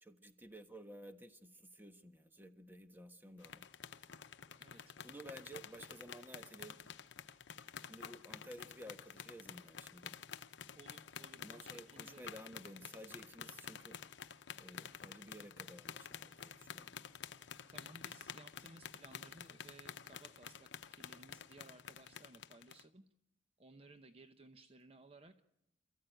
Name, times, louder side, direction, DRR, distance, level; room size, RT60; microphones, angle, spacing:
voice 1, 0.0-3.7 4.7-6.8 7.8-10.1 11.4-14.0 14.6-16.9, right 1 dB, 10° right, 7 dB, 1.3 m, -54 dB
sound 1, 3.4-22.8, left 7 dB, 80° left, 0.8 m, -51 dB
voice 2, 4.6-5.0 10.7-12.3 17.7-23.0 23.6-25.3, right 2 dB, 30° right, 7 dB, 0.9 m, -59 dB
28.0 x 14.5 x 9.1 m, 0.85 s
head